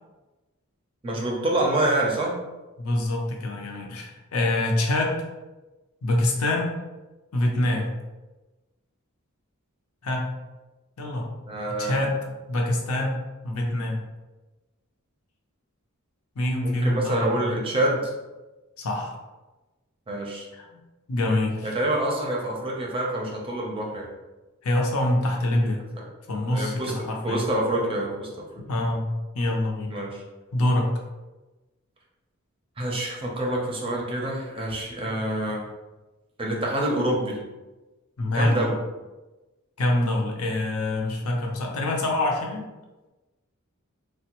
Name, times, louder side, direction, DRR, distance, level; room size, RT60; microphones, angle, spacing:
voice 1, 1.0-2.4 11.5-12.2 16.6-18.1 20.1-20.5 21.6-24.1 26.0-26.1 26.5-28.4 29.9-30.2 32.8-35.6 36.4-37.4 38.3-38.8, right 1 dB, 25° right, -1 dB, 0.5 m, -27 dB
voice 2, 2.8-5.2 6.0-6.7 7.3-7.9 10.0-10.3 11.0-11.3 11.8-12.2 12.5-14.0 16.4-17.6 18.8-19.2 20.5-20.7 21.1-21.7 24.6-25.8 26.3-27.4 28.7-29.1 29.3-29.9 30.5-30.9 38.2-38.6 39.8-42.7, left 1 dB, 80° left, 0 dB, 0.6 m, -25 dB
3.3 x 2.1 x 2.9 m, 1.1 s
head